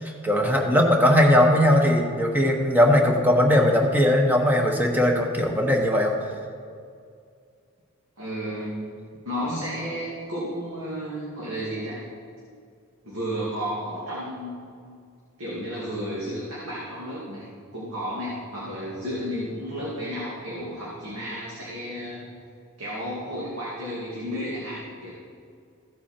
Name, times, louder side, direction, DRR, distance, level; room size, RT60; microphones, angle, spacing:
voice 1, 0.0-6.1 9.5-9.6, left 1 dB, 10° right, 1 dB, 1.1 m, -19 dB
voice 2, 8.2-8.8 9.3-12.0 13.0-14.7 15.4-17.5 17.7-22.3 22.8-25.1, equal, 70° right, -7 dB, 2.3 m, -32 dB
15.0 x 8.2 x 4.4 m, 2.3 s
head